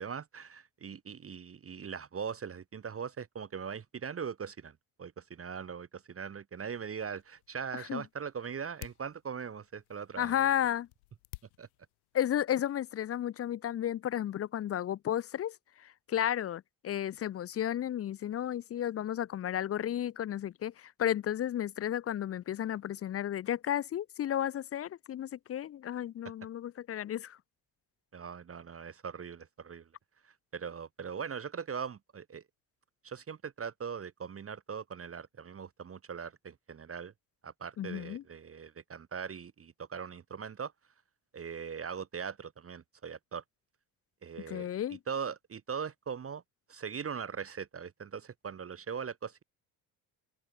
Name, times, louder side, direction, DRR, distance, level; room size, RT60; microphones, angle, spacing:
voice 1, 0.0-10.5 11.6-11.7 28.1-29.9 30.2-32.4 33.0-37.1 37.4-40.7 41.3-43.4 44.2-46.4 46.7-49.4, right 6 dB, 30° right, 1.0 m, -40 dB
sound 1, 6.6-13.0, left 26 dB, 90° left, 2.5 m, -55 dB
voice 2, 10.2-10.9 12.1-15.5 15.8-27.4 37.8-38.2 44.5-45.0, left 11 dB, 35° left, 0.4 m, -33 dB
open air
hypercardioid pair, 55°, 43 cm